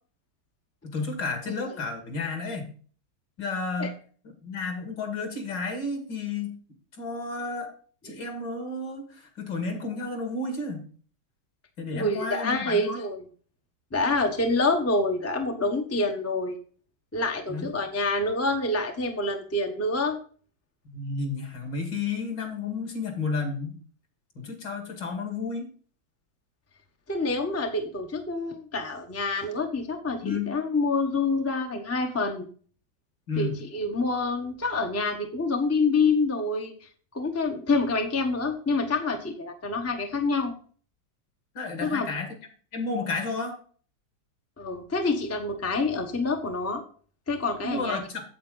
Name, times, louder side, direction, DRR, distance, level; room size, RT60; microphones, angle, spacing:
voice 1, 0.8-2.7 3.4-3.9 4.4-6.5 7.0-7.7 8.0-10.9 11.8-13.0 17.5-17.7 20.9-23.8 24.4-25.7 30.2-30.5 33.3-33.6 41.5-42.3 42.7-43.6 47.6-48.2, left 3 dB, 60° left, 4 dB, 2.8 m, -32 dB
voice 2, 11.9-13.2 13.9-16.6 17.1-20.2 27.1-32.5 33.4-36.9 37.1-40.5 41.8-42.1 44.6-46.8 47.3-48.0, left 3 dB, 10° left, 3 dB, 0.8 m, -27 dB
8.6 x 8.0 x 3.9 m, 0.42 s
omnidirectional pair, 2.2 m